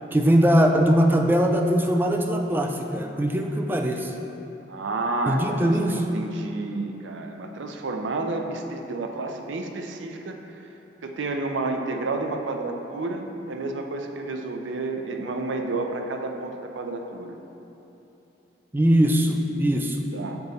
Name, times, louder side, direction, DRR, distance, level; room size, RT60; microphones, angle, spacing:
voice 1, 0.1-4.1 5.3-6.0 18.7-20.0, equal, 10° right, 3 dB, 0.3 m, -21 dB
voice 2, 4.7-10.7 11.0-17.4 20.1-20.4, right 2 dB, 85° right, 4 dB, 0.5 m, -30 dB
6.8 x 3.9 x 4.0 m, 3.0 s
head